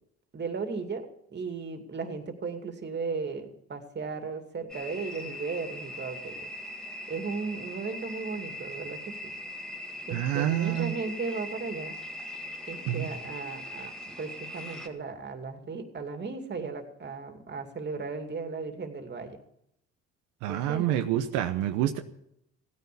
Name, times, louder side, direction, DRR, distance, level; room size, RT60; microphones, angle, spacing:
voice 1, 0.3-6.5 7.1-9.1 10.1-12.0 12.7-13.9 14.2-19.4 20.5-21.0, right 4 dB, 35° right, 6 dB, 2.6 m, -36 dB
sound 1, 4.7-14.9, left 1 dB, ahead, 2.1 m, -40 dB
voice 2, 10.1-10.9 12.9-13.1 20.4-22.0, right 12 dB, 85° right, 6 dB, 1.0 m, -27 dB
16.0 x 9.6 x 6.9 m, 0.76 s
supercardioid pair, 80°, 30 cm